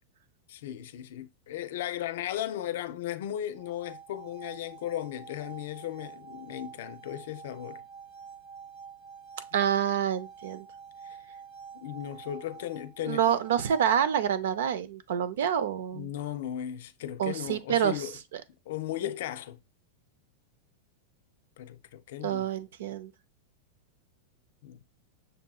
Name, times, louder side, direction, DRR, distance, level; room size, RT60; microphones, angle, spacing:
voice 1, 0.5-7.8 9.5-9.6 11.0-11.2 11.7-13.2 15.9-18.2 18.7-19.6 21.6-22.5 24.6-24.8, left 12 dB, 65° left, 0.5 m, -36 dB
sound 1, 3.5-14.4, right 6 dB, 25° right, 0.8 m, -48 dB
voice 2, 9.5-10.7 13.1-16.1 17.2-18.0 22.2-23.1, right 9 dB, 75° right, 0.6 m, -27 dB
6.5 x 2.7 x 2.3 m
supercardioid pair, 160°, 0 cm